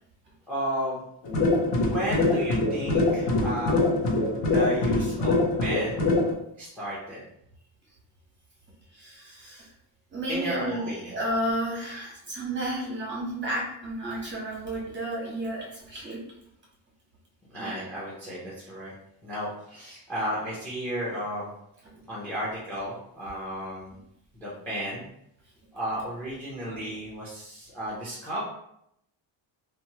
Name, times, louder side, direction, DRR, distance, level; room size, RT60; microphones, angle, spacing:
voice 1, 0.5-1.0 1.8-3.7 4.5-6.1 6.6-7.2 10.3-11.2 17.5-18.9 19.2-21.5 22.1-23.9 24.3-25.1 25.7-28.4, equal, 5° left, -7 dB, 0.5 m, -33 dB
sound 1, 1.2-6.3, left 2 dB, 65° left, 0.7 m, -24 dB
voice 2, 8.9-9.7 10.1-16.2 17.6-17.8 26.7-26.9, right 1 dB, 25° right, -4 dB, 0.9 m, -32 dB
2.9 x 2.2 x 2.8 m, 0.75 s
cardioid pair, 175°, 46 cm